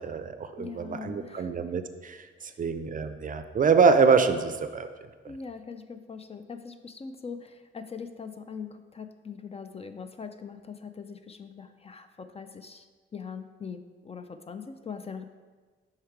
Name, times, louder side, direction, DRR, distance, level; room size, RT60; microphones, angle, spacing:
voice 1, 0.0-4.9, right 5 dB, 40° right, 9 dB, 0.4 m, -25 dB
voice 2, 0.6-1.5 2.4-2.6 5.3-12.9 13.1-15.2, left 5 dB, 30° left, 9 dB, 0.4 m, -41 dB
5.6 x 4.9 x 4.5 m, 1.4 s
cardioid pair, 95°, 21 cm